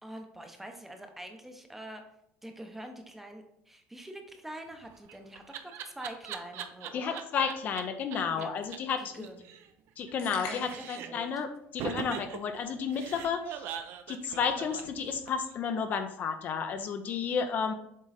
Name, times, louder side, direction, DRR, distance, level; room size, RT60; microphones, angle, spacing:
voice 1, 0.0-2.0 2.4-7.2 8.4-8.5 9.0-9.5 10.3-11.4, right 1 dB, 5° right, 5 dB, 0.7 m, -45 dB
Laughter, 4.7-7.8 8.1-8.2 8.4-8.5 8.7-8.8 9.1-10.4 10.6-11.3 11.8-15.5, right 9 dB, 55° right, 0.6 m, -41 dB
voice 2, 6.9-9.3 10.0-13.6 14.1-17.7, left 6 dB, 35° left, 7 dB, 0.5 m, -32 dB
sound 1, 10.2-11.0, left 5 dB, 75° left, 1.6 m, -41 dB
7.4 x 3.8 x 4.0 m, 0.73 s
cardioid pair, 155°, 5 cm